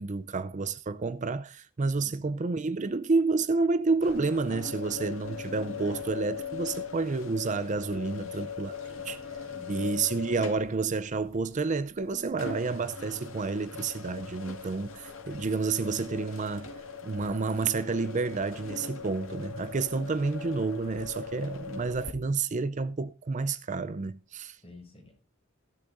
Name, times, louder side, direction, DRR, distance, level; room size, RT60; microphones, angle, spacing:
voice 1, 0.0-8.7 9.0-9.2 9.7-16.7 17.0-24.6, right 4 dB, 35° right, 0.5 m, -30 dB
voice 2, 2.0-2.3 8.1-8.4 9.4-9.9 24.6-25.2, left 2 dB, 30° left, 5.4 m, -50 dB
sound 1, 4.0-22.1, left 5 dB, 85° left, 2.2 m, -41 dB
15.5 x 12.0 x 2.6 m
head